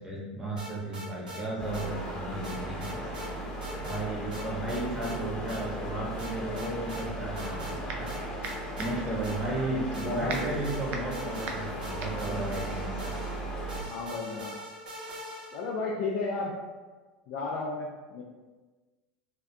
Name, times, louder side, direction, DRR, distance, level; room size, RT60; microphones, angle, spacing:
voice 1, 0.0-3.2 3.8-8.1 8.8-13.2, right 1 dB, 15° right, -5 dB, 0.9 m, -34 dB
sound 1, 0.6-1.4 1.7-1.9 2.4-3.3 3.6-4.0 4.3-5.2 5.5-5.6 6.2-7.0 7.4-7.8 8.1-9.6 9.9-15.7, equal, 90° right, 0.7 m, -42 dB
sound 2, 1.6-13.8, right 1 dB, 20° left, 0.9 m, -37 dB
sound 3, 7.4-8.1 8.4-13.4, right 4 dB, 50° right, 0.4 m, -39 dB
voice 2, 10.1-10.6 13.9-14.5 15.5-16.5 17.3-18.2, left 3 dB, 55° left, -3 dB, 0.4 m, -33 dB
2.6 x 2.3 x 2.3 m, 1.3 s
hypercardioid pair, 90°, 4 cm